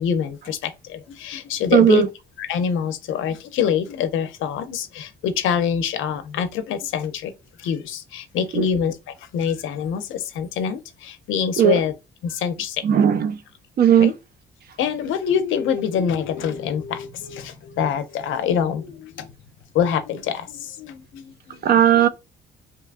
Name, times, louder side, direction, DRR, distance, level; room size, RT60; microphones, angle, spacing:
voice 1, 0.0-2.0 2.4-7.3 7.6-11.9 12.2-12.8 14.0-14.1 14.8-19.3 19.7-21.6 21.9-22.1, left 7 dB, 85° left, 0.5 m, -25 dB
voice 2, 1.7-2.1 8.6-8.7 11.6-11.7 12.8-13.4 13.8-14.1 21.6-22.1, right 9 dB, 50° right, 0.4 m, -16 dB
2.8 x 2.3 x 2.4 m
cardioid pair, 90°, 20 cm